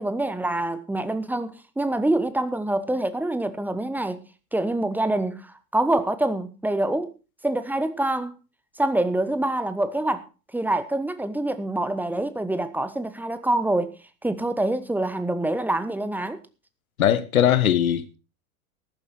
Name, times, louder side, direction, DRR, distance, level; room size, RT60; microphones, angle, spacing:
voice 1, 0.0-7.1 7.4-8.3 8.8-10.3 10.5-14.0 14.2-16.4, right 1 dB, 5° right, 1.2 m, -26 dB
voice 2, 17.0-18.2, left 10 dB, 65° left, 1.4 m, -20 dB
14.0 x 11.5 x 4.5 m
figure-of-eight pair, 85°, 45 cm